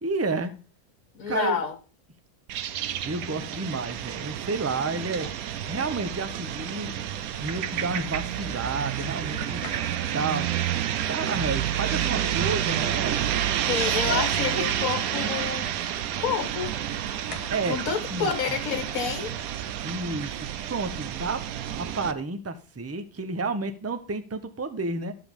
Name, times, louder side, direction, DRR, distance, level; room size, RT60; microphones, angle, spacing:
voice 1, 0.0-0.5 1.3-1.6 3.0-5.3 5.7-6.9 7.4-9.6 10.0-10.5 11.1-13.6 14.0-14.7 17.5-17.8 18.1-18.3 19.8-21.4 21.7-25.1, right 3 dB, 20° right, 0.4 m, -31 dB
voice 2, 1.1-1.7 5.0-5.3 13.6-15.7 16.2-16.8 17.7-19.4, left 7 dB, 60° left, 1.6 m, -29 dB
sound 1, 2.5-22.1, right 10 dB, 70° right, 1.0 m, -29 dB
sound 2, 4.5-4.8 6.1-6.3 9.4-10.4 12.1-12.2 12.7-13.8 14.3-14.5 15.9-16.0 17.1-17.8 19.5-19.7 20.2-20.5, left 3 dB, 25° left, 1.2 m, -46 dB
12.0 x 5.2 x 5.3 m
omnidirectional pair, 1.7 m